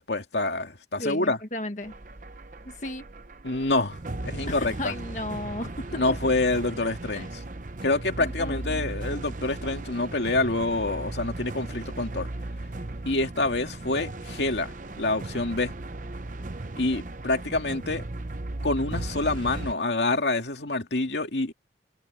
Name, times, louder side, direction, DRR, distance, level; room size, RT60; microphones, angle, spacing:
voice 1, 0.0-1.4 3.4-4.9 6.0-7.4 7.8-12.3 13.1-15.7 16.8-18.1 18.6-21.5, left 2 dB, 75° left, 2.3 m, -27 dB
voice 2, 1.0-1.9 2.6-3.0 4.5-6.0 7.1-7.2 8.2-8.9, left 1 dB, 40° left, 1.6 m, -35 dB
sound 1, 1.8-19.7, right 2 dB, 45° right, 0.9 m, -36 dB
head